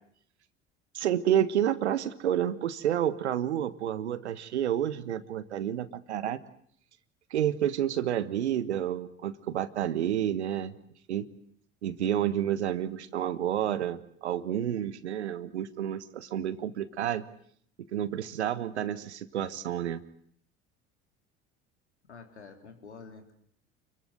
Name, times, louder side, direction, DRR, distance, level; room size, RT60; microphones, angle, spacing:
voice 1, 0.9-6.4 7.3-10.7 11.1-11.3 11.8-17.2 17.9-20.0, right 10 dB, 80° right, 15 dB, 1.4 m, -30 dB
voice 2, 22.1-23.3, left 5 dB, 85° left, 6 dB, 3.4 m, -48 dB
29.5 x 23.0 x 8.1 m, 0.64 s
figure-of-eight pair, 60°, 33 cm